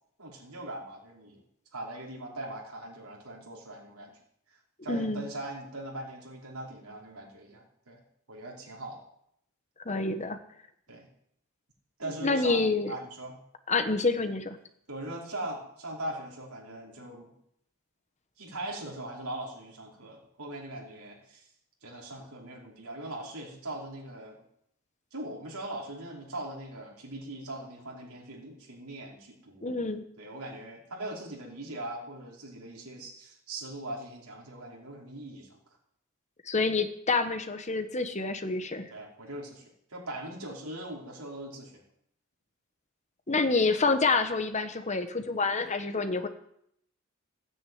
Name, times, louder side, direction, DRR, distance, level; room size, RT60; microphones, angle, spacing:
voice 1, 0.2-1.4 1.7-4.2 4.8-8.0 8.3-9.0 10.9-11.1 12.0-12.6 12.9-13.4 14.9-17.3 18.4-21.5 21.8-24.4 25.1-29.8 30.2-35.6 38.9-39.6 39.9-41.8, right 1 dB, 85° right, -2 dB, 5.0 m, -40 dB
voice 2, 4.9-5.3 9.8-10.4 12.2-12.9 13.7-14.6 29.6-30.0 36.5-38.9 43.3-46.3, left 3 dB, 35° left, 9 dB, 1.2 m, -27 dB
15.5 x 9.6 x 9.5 m, 0.73 s
head